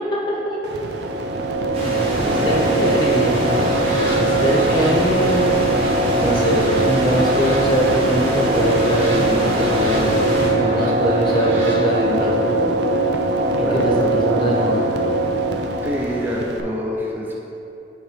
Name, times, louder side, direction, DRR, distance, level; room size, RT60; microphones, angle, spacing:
sound 1, 0.6-16.6, right 2 dB, 65° right, 0.4 m, -21 dB
sound 2, 1.7-10.5, equal, 30° right, 1.1 m, -26 dB
voice 1, 2.2-3.6 4.2-5.6 6.2-12.5 13.5-14.8, equal, 25° left, -5 dB, 1.0 m, -23 dB
sound 3, 3.3-11.8, equal, 85° right, 1.4 m, -34 dB
voice 2, 13.6-14.2 15.8-17.3, left 1 dB, 10° right, -3 dB, 0.7 m, -26 dB
8.8 x 3.9 x 3.4 m, 2.8 s
head